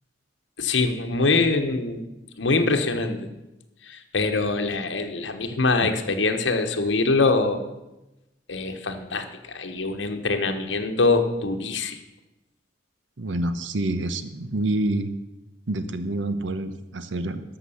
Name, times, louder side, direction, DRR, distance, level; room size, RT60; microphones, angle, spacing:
voice 1, 0.6-2.0 2.4-3.3 3.8-7.6 8.5-12.0, left 3 dB, 80° left, 5 dB, 1.1 m, -24 dB
voice 2, 13.2-15.1 15.7-17.4, right 2 dB, 90° right, 11 dB, 0.9 m, -27 dB
12.5 x 6.0 x 7.1 m, 0.98 s
head